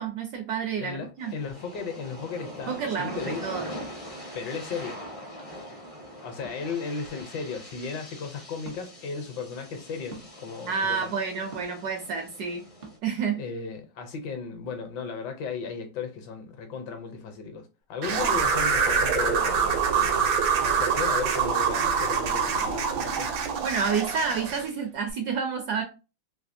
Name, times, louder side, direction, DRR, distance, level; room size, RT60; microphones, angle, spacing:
voice 1, 0.0-1.3 2.5-3.7 10.7-12.7 13.0-13.4 23.6-25.8, right 6 dB, 70° right, 1.0 m, -29 dB
voice 2, 0.8-3.5 4.3-5.0 6.2-11.1 13.4-20.3 20.6-23.3, left 5 dB, 70° left, 1.2 m, -35 dB
sound 1, 1.2-13.0, equal, 45° left, 0.4 m, -42 dB
sound 2, 4.7-4.9 6.4-6.8 8.6-8.8 10.1-10.3 11.5-11.8 12.8-12.9, right 3 dB, 55° right, 0.6 m, -44 dB
sound 3, 18.0-24.7, right 6 dB, 85° right, 1.4 m, -25 dB
3.4 x 2.7 x 2.6 m
omnidirectional pair, 2.1 m